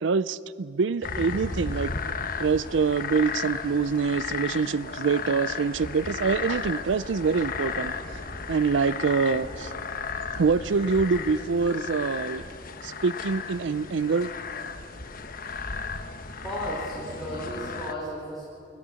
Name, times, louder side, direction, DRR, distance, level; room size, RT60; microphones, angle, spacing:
voice 1, 0.0-1.9 2.4-7.9 8.5-9.7 10.4-12.4 12.8-14.3, right 5 dB, 75° right, 18 dB, 0.5 m, -25 dB
sound 1, 1.0-17.9, left 5 dB, 50° left, 1.2 m, -34 dB
voice 2, 16.4-18.5, equal, ahead, -8 dB, 5.4 m, -34 dB
30.0 x 17.5 x 7.0 m, 3.0 s
head